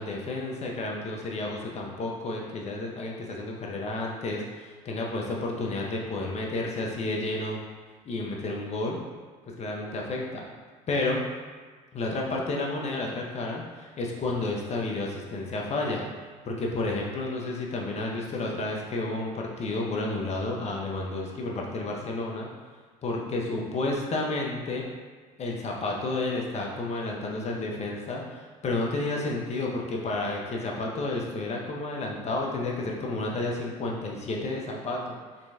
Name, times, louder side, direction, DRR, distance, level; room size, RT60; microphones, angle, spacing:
voice 1, 0.0-7.6 8.0-9.0 9.6-10.5 10.9-11.2 11.9-16.1 16.4-22.5 23.0-24.8 25.4-35.2, left 2 dB, 40° left, -1 dB, 0.8 m, -31 dB
3.9 x 3.1 x 2.3 m, 1.5 s
hypercardioid pair, 70°, 17 cm